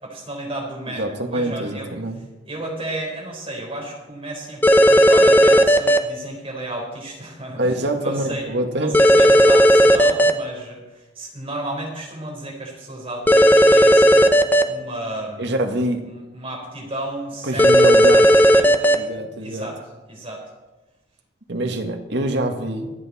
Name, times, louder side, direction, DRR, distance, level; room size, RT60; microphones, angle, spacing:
voice 1, 0.0-15.6 16.0-19.1 19.4-19.8 20.1-20.4, right 1 dB, 30° right, -1 dB, 4.5 m, -33 dB
voice 2, 1.0-2.2 7.6-9.0 15.4-16.0 17.4-18.3 18.9-19.7 21.5-22.9, right 1 dB, 60° right, 4 dB, 1.8 m, -24 dB
sound 1, 4.6-6.0 8.9-10.3 13.3-14.6 17.6-18.9, equal, 10° left, 0.8 m, -13 dB
25.5 x 8.6 x 4.3 m, 1.1 s
head